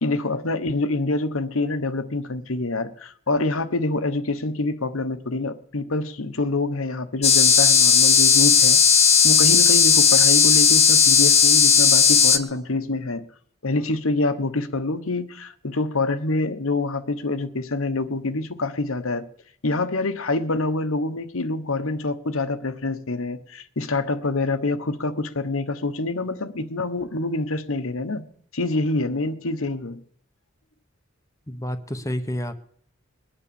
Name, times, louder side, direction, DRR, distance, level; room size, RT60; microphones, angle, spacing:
voice 1, 0.0-8.8 9.2-13.2 13.6-19.3 19.6-28.2 28.5-30.0, left 2 dB, 85° left, 1.2 m, -26 dB
sound 1, 7.2-12.4, left 7 dB, 30° left, 1.4 m, -15 dB
voice 2, 31.5-32.6, equal, 15° left, 0.9 m, -29 dB
21.0 x 9.0 x 7.0 m
head